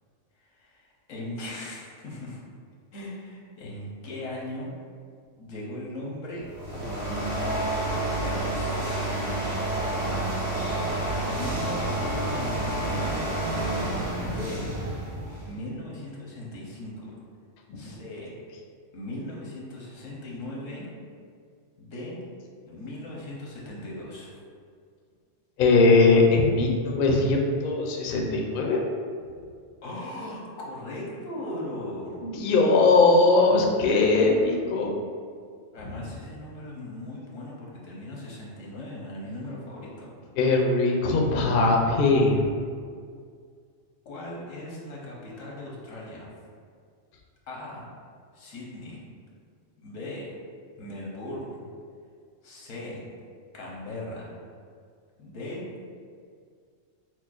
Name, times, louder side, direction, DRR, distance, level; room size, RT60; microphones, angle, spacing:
voice 1, 1.1-2.4 2.9-4.7 5.4-7.3 7.8-8.9 10.0-10.4 11.2-13.2 14.2-14.7 15.4-17.1 17.8-18.3 18.9-20.9 21.8-22.2 22.6-24.3 29.8-32.2 35.7-40.1 44.0-46.3 47.5-47.9 48.3-49.0 49.8-50.4 50.8-51.7 52.4-53.0 53.5-54.3 55.2-55.7, left 1 dB, 85° left, -4 dB, 1.2 m, -38 dB
sound 1, 6.4-15.6, right 1 dB, 40° right, 0.8 m, -29 dB
voice 2, 25.6-28.8 32.2-34.9 40.4-42.5, left 3 dB, 60° left, 0 dB, 0.6 m, -20 dB
6.1 x 2.0 x 2.4 m, 2.1 s
omnidirectional pair, 1.3 m